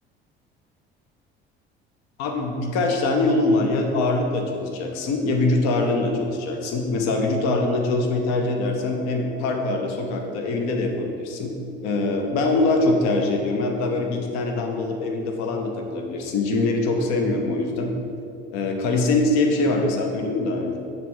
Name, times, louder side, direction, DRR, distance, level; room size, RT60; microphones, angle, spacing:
voice 1, 2.2-11.6 11.8-17.9 18.5-20.8, left 2 dB, 60° left, 3 dB, 0.8 m, -23 dB
6.8 x 3.2 x 4.6 m, 2.7 s
hypercardioid pair, 60°, 31 cm